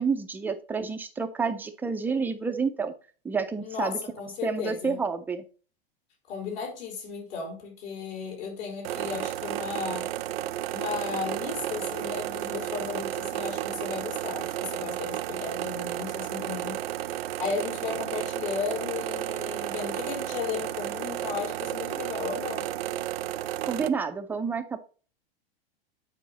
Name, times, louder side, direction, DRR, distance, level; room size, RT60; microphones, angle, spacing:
voice 1, 0.0-2.9 3.2-4.0 4.4-5.4 23.7-24.8, right 5 dB, 5° right, 7 dB, 0.3 m, -29 dB
voice 2, 3.6-5.0 6.3-10.1 10.7-16.8 17.4-22.7, left 5 dB, 70° left, 0 dB, 4.2 m, -35 dB
sound 1, 8.8-23.9, right 13 dB, 85° right, 0.7 m, -33 dB
8.4 x 4.9 x 3.8 m, 0.38 s
supercardioid pair, 145°, 30 cm